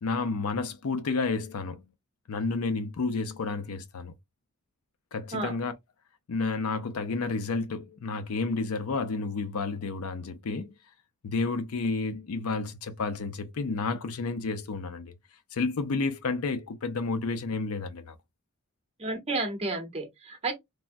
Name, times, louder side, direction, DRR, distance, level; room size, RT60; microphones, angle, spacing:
voice 1, 0.0-1.8 2.3-4.1 5.1-5.7 6.3-10.7 11.2-15.1 15.5-18.2, left 3 dB, 85° left, 0.5 m, -31 dB
voice 2, 19.0-20.5, right 3 dB, 30° right, 0.8 m, -31 dB
3.4 x 2.1 x 2.5 m
head